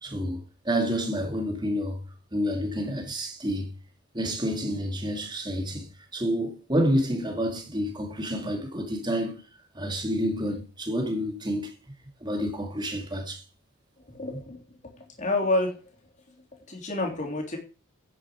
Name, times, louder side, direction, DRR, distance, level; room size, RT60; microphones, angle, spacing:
voice 1, 0.0-2.0 2.3-3.7 4.1-9.4 9.7-11.8 12.2-13.4 14.3-14.4, equal, 20° right, 2.4 m, -29 dB
voice 2, 14.1-14.6 15.2-15.7 16.7-17.6, left 2 dB, 35° left, 3.4 m, -27 dB
10.5 x 8.4 x 5.1 m
head